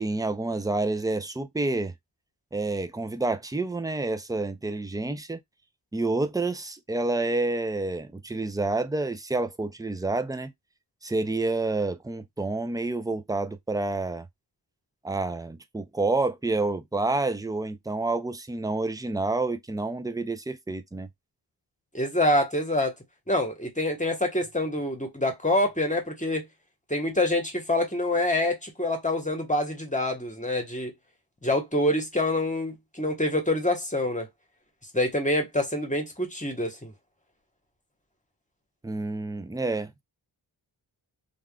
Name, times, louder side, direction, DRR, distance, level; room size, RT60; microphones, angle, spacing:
voice 1, 0.0-1.9 2.5-5.4 5.9-10.5 11.0-14.3 15.0-21.1 38.8-39.9, right 2 dB, 10° right, 0.4 m, -28 dB
voice 2, 21.9-22.9 23.3-26.4 26.9-30.9 31.4-34.3 34.9-36.9, left 1 dB, 15° left, 1.1 m, -26 dB
3.4 x 2.4 x 2.3 m
cardioid pair, 50°, 45 cm